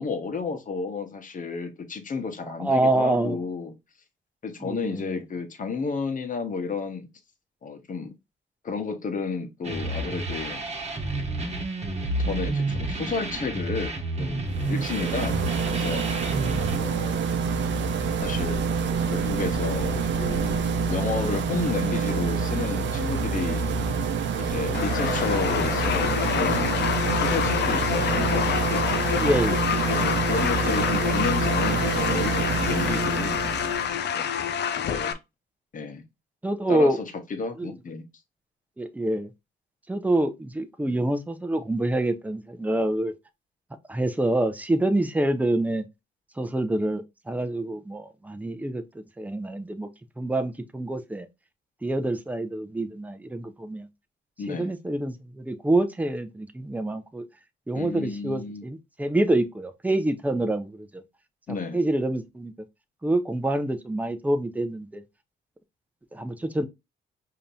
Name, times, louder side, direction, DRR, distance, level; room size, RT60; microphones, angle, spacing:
voice 1, 0.0-3.7 4.4-7.1 7.6-8.1 8.6-10.6 12.3-15.4 15.7-16.1 16.7-17.2 18.2-18.6 19.1-23.9 24.4-26.8 27.1-28.4 29.9-33.4 34.1-34.3 34.7-35.2 35.7-36.0 36.7-38.0 54.4-54.7 57.7-58.7 61.5-61.8, left 4 dB, 40° left, 1.1 m, -32 dB
voice 2, 2.6-3.4 4.6-5.2 29.2-29.7 36.4-37.0 37.6-37.7 38.8-39.3 39.9-43.1 43.9-45.8 46.4-49.9 50.2-51.3 51.8-53.9 54.5-57.2 57.7-61.0 61.7-62.5 63.0-65.0 66.1-66.7, right 1 dB, 10° right, 0.6 m, -26 dB
sound 1, 9.6-16.8, right 2 dB, 35° right, 1.4 m, -30 dB
sound 2, 14.5-33.9, right 5 dB, 65° right, 0.7 m, -27 dB
sound 3, 24.7-35.1, left 8 dB, 60° left, 0.6 m, -27 dB
5.1 x 2.8 x 2.5 m
cardioid pair, 90°, 20 cm